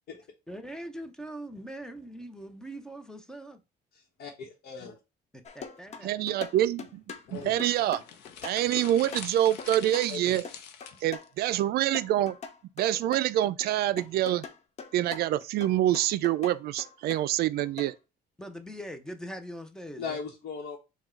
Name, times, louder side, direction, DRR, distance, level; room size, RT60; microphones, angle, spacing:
voice 1, 0.5-3.6 5.3-6.1 18.4-20.2, right 1 dB, 5° left, 0.7 m, -42 dB
voice 2, 3.9-5.0 7.3-7.5 10.1-10.4 20.0-20.8, left 5 dB, 65° left, 1.1 m, -38 dB
sound 1, 5.4-11.7 11.9-13.7 14.0-17.9, left 5 dB, 40° left, 0.7 m, -43 dB
voice 3, 6.0-7.0 7.3-8.0 8.4-10.4 11.0-12.4 12.8-14.4 14.9-18.0, right 13 dB, 70° right, 0.4 m, -26 dB
sound 2, 7.3-11.3, left 7 dB, 90° left, 0.8 m, -45 dB
4.4 x 2.3 x 4.4 m
cardioid pair, 110°, 17 cm